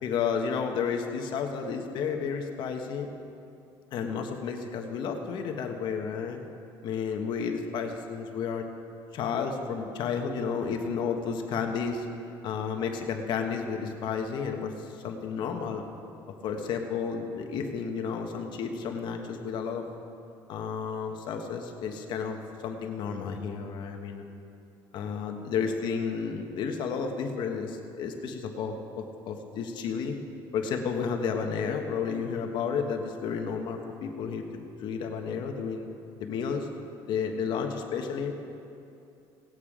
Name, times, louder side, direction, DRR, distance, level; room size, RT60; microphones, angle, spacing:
voice 1, 0.0-3.1 3.9-6.4 6.8-8.6 9.1-12.1 12.4-15.8 16.4-19.8 20.5-24.2 24.9-30.2 30.5-34.4 34.8-35.9 36.2-36.7 37.1-38.3, left 6 dB, 60° left, 4 dB, 1.3 m, -32 dB
17.5 x 9.2 x 5.0 m, 2.7 s
cardioid pair, 135°, 9 cm